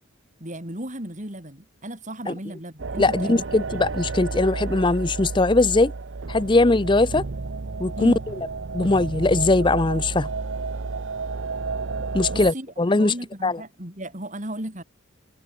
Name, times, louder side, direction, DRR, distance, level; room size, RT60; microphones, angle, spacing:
voice 1, 0.4-3.8 8.0-8.2 12.3-14.8, right 1 dB, 35° right, 5.4 m, -35 dB
sound 1, 2.8-12.5, right 4 dB, 65° right, 0.8 m, -31 dB
voice 2, 3.0-5.9 6.3-7.2 7.8-8.1 8.7-10.3 12.1-13.1 13.4-13.6, left 2 dB, 25° left, 0.6 m, -20 dB
head